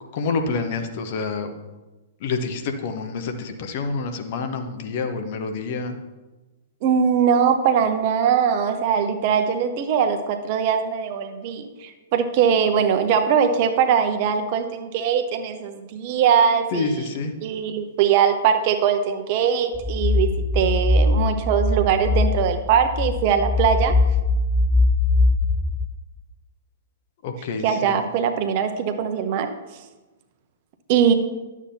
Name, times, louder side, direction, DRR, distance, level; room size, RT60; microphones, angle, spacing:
voice 1, 0.1-1.5 2.2-6.0 16.7-17.3 27.2-28.0, left 4 dB, 45° left, 6 dB, 0.9 m, -27 dB
voice 2, 6.8-17.1 17.4-24.0 27.6-29.5 30.9-31.1, right 7 dB, 40° right, 7 dB, 0.8 m, -21 dB
sound 1, 19.7-25.9, left 2 dB, ahead, 0.4 m, -21 dB
11.5 x 7.2 x 2.8 m, 1.1 s
figure-of-eight pair, 105°, 0 cm